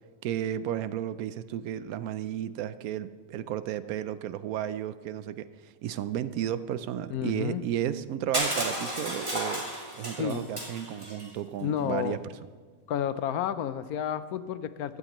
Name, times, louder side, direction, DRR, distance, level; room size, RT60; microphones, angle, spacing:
voice 1, 0.2-9.6 10.0-12.2, right 10 dB, 75° right, 14 dB, 1.0 m, -33 dB
voice 2, 7.1-7.6 10.2-10.5 11.6-12.2 12.9-15.0, left 9 dB, 85° left, 13 dB, 1.1 m, -31 dB
Crushing, 8.3-11.3, right 1 dB, 20° right, 2.6 m, -33 dB
16.0 x 13.0 x 3.0 m, 1.5 s
omnidirectional pair, 1.6 m